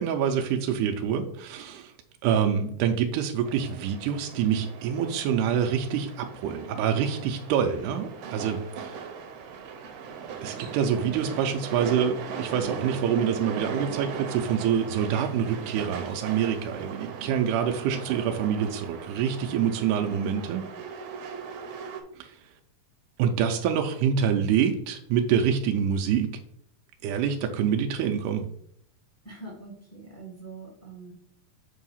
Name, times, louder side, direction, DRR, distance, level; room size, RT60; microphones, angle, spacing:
voice 1, 0.0-1.9 2.2-9.0 10.4-20.6 22.2-22.4 23.2-26.3 27.0-28.4, right 8 dB, 90° right, 4 dB, 2.1 m, -26 dB
sound 1, 3.4-22.0, right 6 dB, 70° right, 1.6 m, -38 dB
voice 2, 10.9-11.2 29.2-31.1, right 3 dB, 15° left, -4 dB, 0.6 m, -43 dB
7.3 x 2.7 x 5.5 m, 0.66 s
omnidirectional pair, 3.6 m